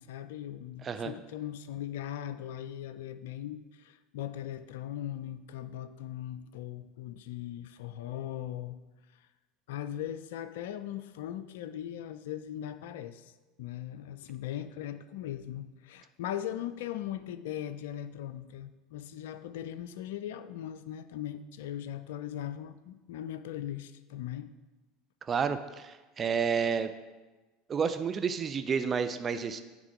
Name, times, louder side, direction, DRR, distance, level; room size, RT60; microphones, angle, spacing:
voice 1, 0.0-8.8 9.7-13.3 13.6-24.5, left 11 dB, 70° left, 12 dB, 0.4 m, -39 dB
voice 2, 0.8-1.1 25.3-26.9 27.7-29.6, right 6 dB, 30° right, 10 dB, 0.5 m, -30 dB
9.7 x 3.7 x 5.0 m, 1.2 s
hypercardioid pair, 75°, 0 cm